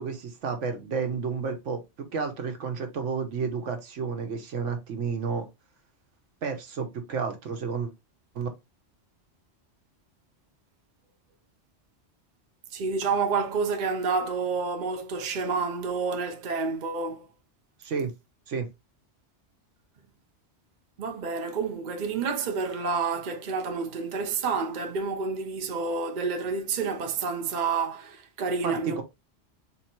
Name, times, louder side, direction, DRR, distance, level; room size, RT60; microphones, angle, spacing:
voice 1, 0.0-1.8 2.1-5.5 6.4-7.9 8.3-8.5 17.8-18.1 18.5-18.7 28.6-29.0, right 5 dB, 85° right, 1.3 m, -31 dB
voice 2, 12.7-17.3 21.0-29.0, right 4 dB, 45° right, 0.8 m, -29 dB
3.8 x 3.0 x 4.3 m
omnidirectional pair, 1.2 m